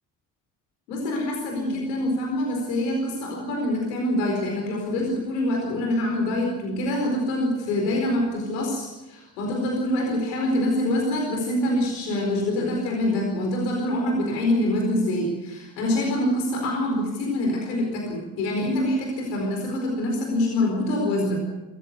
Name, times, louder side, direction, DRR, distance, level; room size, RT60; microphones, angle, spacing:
voice 1, 0.9-21.5, left 1 dB, 85° left, 0 dB, 4.6 m, -25 dB
25.5 x 15.0 x 8.3 m, 1.1 s
hypercardioid pair, 50°, 48 cm